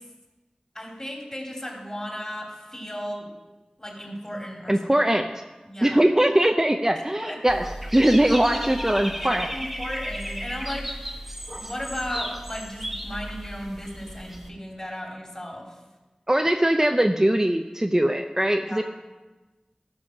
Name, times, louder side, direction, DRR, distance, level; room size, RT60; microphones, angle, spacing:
voice 1, 0.7-3.3 3.8-4.7 5.6-6.0 7.2-7.3 8.5-11.2 11.5-15.8 18.7-18.8, equal, 25° left, -1 dB, 3.1 m, -35 dB
voice 2, 4.7-5.3 5.8-7.6 7.9-9.7 16.3-18.8, right 1 dB, 20° right, 4 dB, 0.6 m, -21 dB
Dog / Bird, 7.5-14.5, equal, 5° right, 1.3 m, -34 dB
14.0 x 5.7 x 6.4 m, 1.2 s
wide cardioid pair, 50°, 2 cm